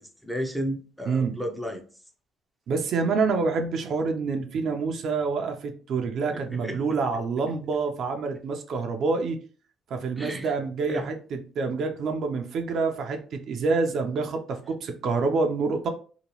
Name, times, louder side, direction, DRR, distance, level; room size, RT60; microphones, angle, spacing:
voice 1, 0.0-1.8 6.3-6.8 10.2-10.5 10.9-11.1, equal, ahead, 2 dB, 0.5 m, -33 dB
voice 2, 1.1-1.4 2.7-9.4 9.9-15.9, right 4 dB, 55° right, 4 dB, 0.5 m, -27 dB
2.8 x 2.3 x 2.9 m, 0.39 s
cardioid pair, 120°, 0 cm